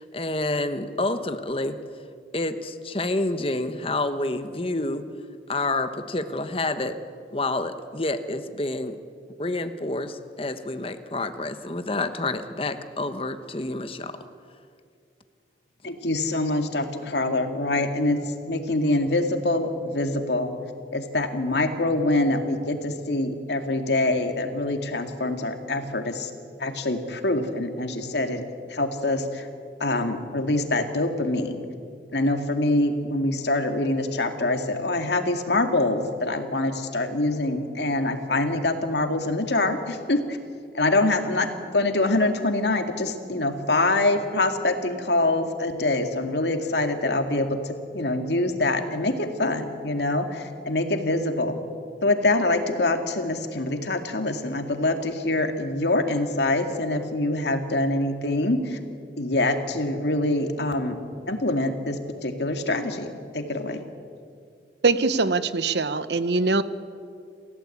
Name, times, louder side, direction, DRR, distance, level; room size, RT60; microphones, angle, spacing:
voice 1, 0.0-1.8 2.3-5.0 5.5-7.0 7.3-9.0 9.4-14.2, left 2 dB, 30° left, 9 dB, 1.2 m, -28 dB
voice 2, 15.8-20.5 20.9-26.3 26.6-28.4 28.7-29.5 29.8-31.7 32.1-40.4 40.7-51.6 52.0-58.8 59.2-61.0 61.3-63.8, left 2 dB, 75° left, 5 dB, 2.2 m, -25 dB
voice 3, 64.8-66.6, right 3 dB, 75° right, 13 dB, 1.0 m, -22 dB
28.5 x 16.0 x 8.6 m, 2.3 s
head